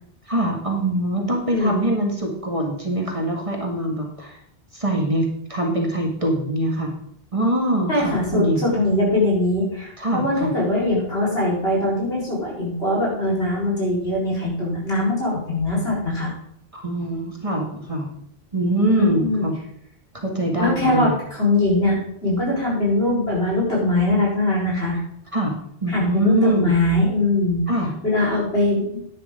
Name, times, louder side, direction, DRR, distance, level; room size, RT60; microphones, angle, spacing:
voice 1, 0.3-4.4 4.7-6.9 7.3-8.6 10.0-10.5 16.7-18.1 18.5-19.5 20.1-21.1 25.3-25.5 25.8-26.7 27.7-27.9, right 1 dB, 35° right, 0 dB, 2.0 m, -23 dB
voice 2, 1.5-1.8 7.9-16.3 19.0-19.4 20.6-21.1 21.4-25.0 25.9-27.6 28.0-29.0, left 2 dB, 75° left, -5 dB, 4.6 m, -21 dB
10.5 x 10.0 x 3.7 m, 0.70 s
omnidirectional pair, 1.0 m